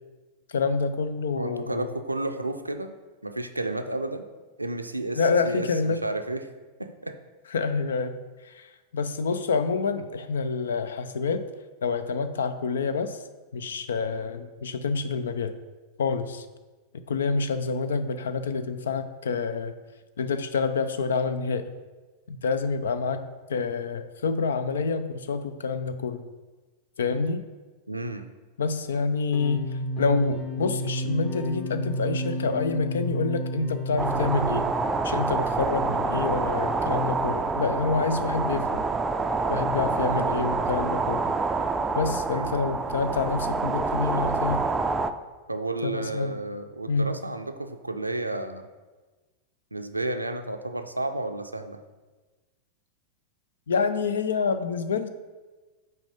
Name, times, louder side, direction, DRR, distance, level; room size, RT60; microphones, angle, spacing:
voice 1, 0.5-1.9 5.2-6.0 7.5-11.4 11.8-13.2 13.5-15.6 16.0-16.4 17.1-19.7 20.2-21.7 22.3-23.2 23.5-26.2 27.0-27.4 28.6-29.7 30.0-34.7 35.0-38.8 39.5-41.3 41.9-44.7 45.8-46.4 46.9-47.1 53.7-55.1, left 4 dB, 65° left, 11 dB, 0.5 m, -27 dB
voice 2, 1.3-2.9 3.2-4.3 4.6-6.5 6.8-7.2 27.9-28.3 42.3-42.5 45.5-48.7 49.7-51.8, right 2 dB, 85° right, 7 dB, 0.5 m, -32 dB
sound 1, 29.3-35.0, equal, 25° left, 1.0 m, -31 dB
sound 2, 34.0-45.1, right 3 dB, 15° right, 0.4 m, -27 dB
6.0 x 4.5 x 5.1 m, 1.3 s
figure-of-eight pair, 90°, 0 cm